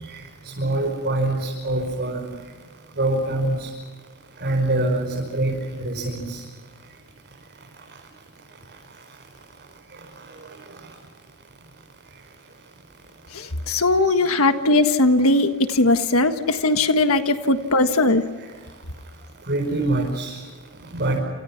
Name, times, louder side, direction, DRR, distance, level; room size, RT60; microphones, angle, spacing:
voice 1, 0.6-2.3 3.0-3.7 4.4-5.0 5.3-6.4 19.5-20.4 20.9-21.2, right 2 dB, 50° right, -1 dB, 5.7 m, -24 dB
voice 2, 13.3-18.2, left 2 dB, 65° left, 7 dB, 1.6 m, -19 dB
29.0 x 29.0 x 6.0 m, 1.5 s
head